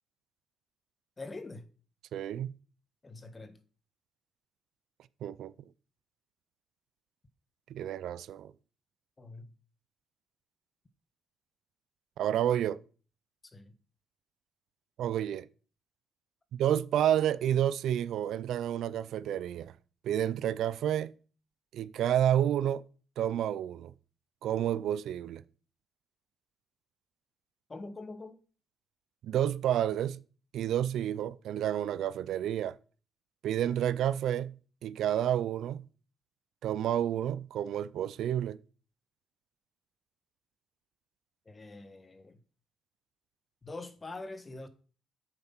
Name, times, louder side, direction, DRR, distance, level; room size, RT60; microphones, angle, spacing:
voice 1, 1.2-1.7 3.0-3.6 9.2-9.5 13.5-13.7 27.7-28.4 41.4-42.4 43.6-44.7, left 3 dB, 25° left, 1.3 m, -44 dB
voice 2, 2.1-2.5 5.2-5.5 7.7-8.5 12.2-12.8 15.0-15.5 16.5-19.7 20.0-21.1 21.7-22.8 23.2-23.9 24.4-25.4 29.2-30.2 30.5-32.8 33.4-34.6 34.8-35.9 36.6-38.6, right 10 dB, 75° right, 0.4 m, -30 dB
8.1 x 7.3 x 5.7 m
cardioid pair, 90°, 0 cm